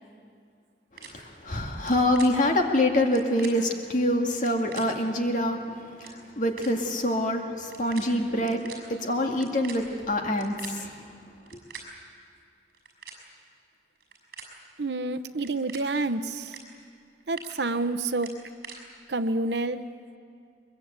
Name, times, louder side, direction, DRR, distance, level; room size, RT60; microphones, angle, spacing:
voice 1, 1.0-10.9 11.5-11.6, left 1 dB, 45° left, 2 dB, 2.1 m, -26 dB
sound 1, 1.0-1.1 1.7-2.3 3.0-3.5 4.3-4.8 5.6-5.7 5.9-6.1 6.6-6.7 7.6-8.0 8.3-8.8 9.3-10.7 11.4-11.8 12.7-13.2 14.0-14.5 15.3-15.8 16.4-16.6 17.0-17.5 18.2-18.8, right 7 dB, 55° right, 5.9 m, -43 dB
voice 2, 14.8-16.6 17.3-18.4 19.1-19.9, right 2 dB, 75° right, 12 dB, 0.8 m, -28 dB
22.5 x 22.0 x 8.2 m, 2.3 s
head